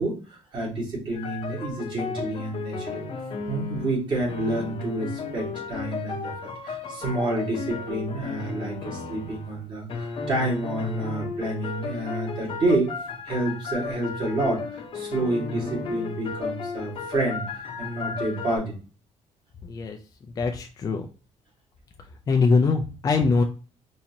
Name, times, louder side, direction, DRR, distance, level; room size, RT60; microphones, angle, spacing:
voice 1, 0.0-3.1 3.5-6.3 6.6-13.0 13.2-18.8, right 2 dB, 40° right, -3 dB, 1.8 m, -29 dB
sound 1, 1.1-4.0 4.3-9.6 9.9-18.6, left 4 dB, 45° left, 0.8 m, -34 dB
voice 2, 20.4-21.1 22.3-23.4, left 4 dB, 30° left, 4 dB, 0.4 m, -22 dB
4.3 x 2.7 x 2.8 m, 0.36 s
cardioid pair, 160°, 13 cm